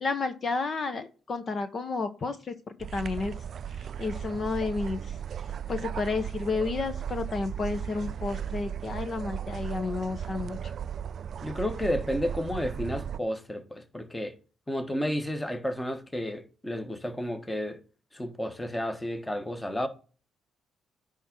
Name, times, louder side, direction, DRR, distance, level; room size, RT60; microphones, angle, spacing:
voice 1, 0.0-2.5 2.9-3.3 3.8-5.2 5.7-10.6, left 4 dB, 45° left, 1.0 m, -31 dB
sound 1, 2.8-13.2, right 9 dB, 55° right, 0.3 m, -36 dB
voice 2, 11.4-14.4 14.7-17.8 18.1-19.9, left 1 dB, 10° left, 1.4 m, -32 dB
10.0 x 3.7 x 6.1 m
cardioid pair, 90°, 0 cm